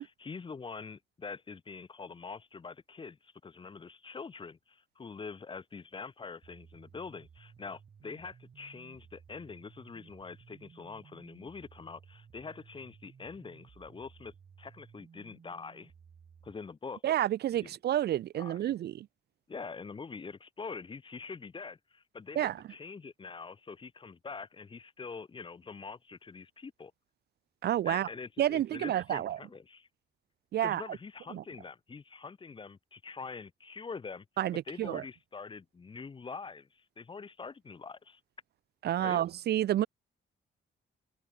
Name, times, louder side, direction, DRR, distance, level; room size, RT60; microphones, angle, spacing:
voice 1, 0.0-15.9 16.4-17.0 17.6-17.7 18.3-18.7 19.5-26.9 27.8-29.9 30.6-34.3 34.7-38.2 39.0-39.2, left 5 dB, 25° left, 0.7 m, -44 dB
sound 1, 6.4-16.5, right 7 dB, 45° right, 2.2 m, -57 dB
voice 2, 17.0-19.1 22.4-22.6 27.6-28.1 28.4-29.4 30.5-30.8 31.3-31.4 34.4-35.0 38.8-39.9, right 12 dB, 60° right, 0.4 m, -29 dB
cardioid pair, 115°, 19 cm